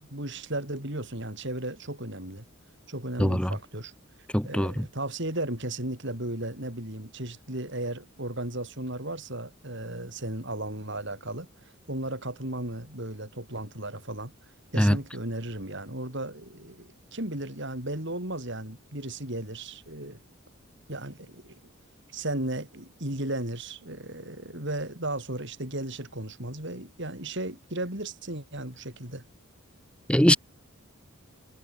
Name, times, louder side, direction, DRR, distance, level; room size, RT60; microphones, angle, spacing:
voice 1, 0.0-2.4 2.9-3.9 4.4-11.5 11.9-14.3 14.7-20.2 20.9-21.6 22.1-29.3, right 1 dB, 55° right, 6.3 m, -35 dB
voice 2, 3.2-3.5 4.3-4.8 14.8-15.0 30.1-30.4, equal, 5° left, 2.1 m, -21 dB
head